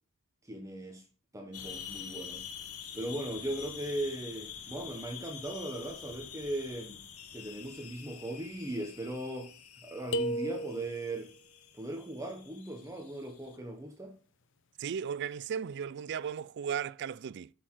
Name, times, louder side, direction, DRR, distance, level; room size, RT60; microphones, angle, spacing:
voice 1, 0.4-1.0 1.3-2.5 2.9-7.0 7.3-9.5 9.8-11.3 11.8-14.1, right 1 dB, 15° right, 0.9 m, -38 dB
sound 1, 1.5-13.6, left 8 dB, 80° left, 1.0 m, -47 dB
sound 2, 10.1-11.2, right 1 dB, 55° left, 0.7 m, -34 dB
voice 2, 14.8-17.5, right 7 dB, 50° right, 0.3 m, -36 dB
7.5 x 6.5 x 4.5 m
head